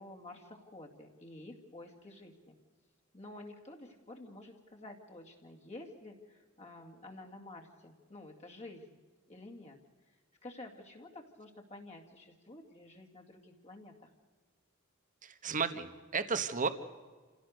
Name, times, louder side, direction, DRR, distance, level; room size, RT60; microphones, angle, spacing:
voice 1, 0.0-2.6 3.1-9.0 9.3-9.8 10.1-10.2 10.4-14.1, left 2 dB, 30° left, 0 dB, 2.4 m, -50 dB
voice 2, 15.2-16.7, right 5 dB, 40° right, 10 dB, 1.3 m, -33 dB
28.5 x 17.0 x 6.6 m, 1.4 s
head